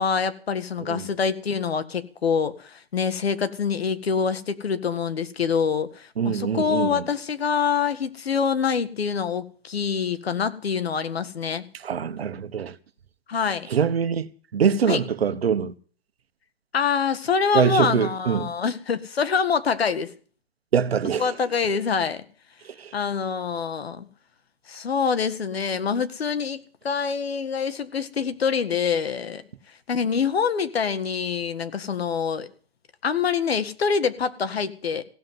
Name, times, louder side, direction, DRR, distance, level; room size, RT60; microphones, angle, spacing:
voice 1, 0.0-11.6 13.3-13.7 14.9-15.0 16.7-20.1 21.2-22.2 22.9-24.1 24.7-26.6 26.8-29.4 29.9-32.5 33.0-35.0, left 6 dB, 85° left, 1.8 m, -25 dB
voice 2, 6.2-7.0 11.8-12.7 13.7-15.7 17.5-18.5 20.7-21.3 22.8-22.9, right 7 dB, 80° right, 1.4 m, -24 dB
16.5 x 7.8 x 9.4 m
hypercardioid pair, 140°, 30 cm